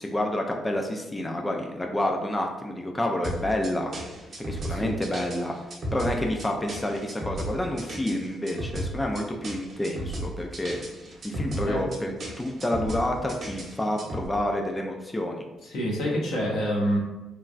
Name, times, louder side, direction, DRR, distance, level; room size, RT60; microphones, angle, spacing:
voice 1, 0.0-3.9 4.5-5.5 5.9-10.8 11.2-15.4, left 1 dB, 15° left, 2 dB, 0.3 m, -29 dB
sound 1, 3.2-14.3, right 1 dB, 50° right, 0.8 m, -35 dB
voice 2, 15.6-17.0, equal, 85° left, -3 dB, 0.8 m, -27 dB
3.1 x 2.2 x 2.4 m, 1.0 s
cardioid pair, 100°, 0 cm